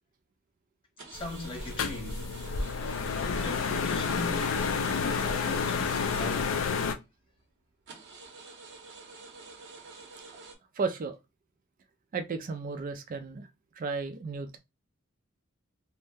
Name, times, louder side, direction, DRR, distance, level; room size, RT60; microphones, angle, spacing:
voice 1, 1.0-2.3 3.2-6.5, left 2 dB, 25° left, 0.8 m, -40 dB
sound 1, 1.0-7.0 7.4-7.5 7.9-10.6, right 4 dB, 55° right, 0.7 m, -48 dB
sound 2, 1.1-6.9, left 5 dB, 70° left, 0.4 m, -30 dB
voice 2, 10.7-11.2 12.1-13.5 13.7-14.6, right 4 dB, 40° right, 0.3 m, -33 dB
2.6 x 2.1 x 3.3 m
head